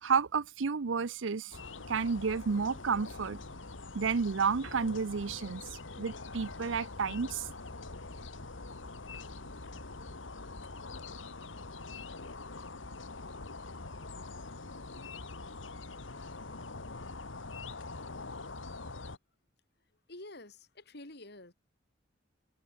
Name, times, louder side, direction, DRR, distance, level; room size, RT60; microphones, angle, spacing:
voice 1, 0.0-1.6 1.9-3.4 3.9-5.7 6.0-7.5, right 5 dB, 80° right, 0.6 m, -31 dB
sound 1, 1.5-19.2, left 3 dB, 85° left, 1.9 m, -44 dB
voice 2, 19.8-21.5, left 2 dB, 60° left, 4.3 m, -50 dB
head